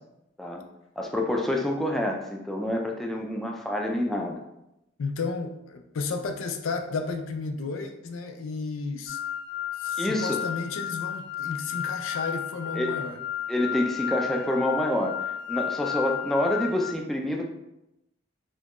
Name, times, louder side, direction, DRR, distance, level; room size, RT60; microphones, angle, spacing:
voice 1, 1.0-4.4 10.0-10.4 12.8-12.9 13.5-15.2 15.5-17.4, left 1 dB, ahead, 0 dB, 0.3 m, -27 dB
voice 2, 5.0-9.2 9.8-13.2, left 4 dB, 85° left, 6 dB, 0.4 m, -33 dB
sound 1, 9.1-16.9, left 9 dB, 45° left, 1.1 m, -33 dB
4.3 x 2.3 x 2.9 m, 0.88 s
head